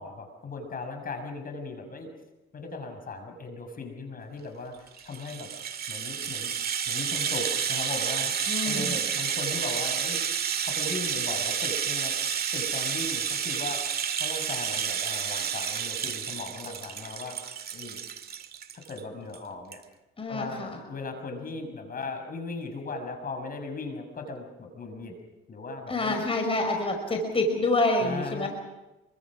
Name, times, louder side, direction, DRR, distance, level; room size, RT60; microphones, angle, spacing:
voice 1, 0.0-2.1 2.5-5.5 5.9-6.5 6.9-10.2 10.6-12.2 12.5-13.8 14.2-17.4 17.7-18.0 18.7-19.8 20.3-25.2 25.5-26.2 28.0-28.5, left 3 dB, 45° left, 6 dB, 6.2 m, -37 dB
Rattle (instrument), 4.9-19.0 19.3-19.4 19.7-19.8, right 7 dB, 50° right, 2.0 m, -30 dB
voice 2, 8.5-9.0 20.2-20.8 25.9-28.5, left 2 dB, 30° left, 3 dB, 5.4 m, -27 dB
28.0 x 24.5 x 6.2 m, 1.0 s
cardioid pair, 90°, 20 cm